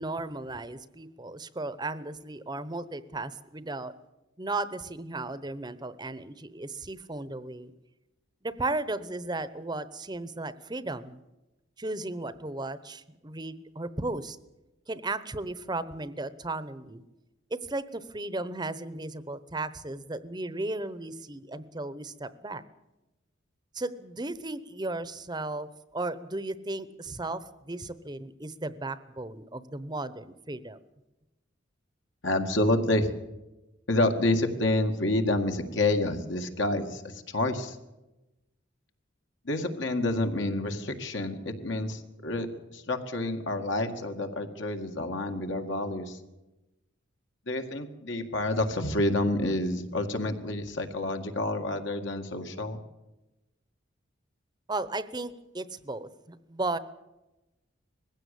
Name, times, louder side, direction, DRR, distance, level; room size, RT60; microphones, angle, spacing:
voice 1, 0.0-3.9 4.4-7.7 8.4-11.2 11.8-14.4 14.9-17.0 17.5-22.6 23.7-30.8 54.7-56.8, right 2 dB, 20° right, 15 dB, 0.9 m, -35 dB
voice 2, 32.2-33.1 33.9-37.8 39.5-42.5 42.7-46.2 47.5-52.8, left 2 dB, 65° left, 5 dB, 2.1 m, -28 dB
20.5 x 16.0 x 8.4 m, 0.99 s
head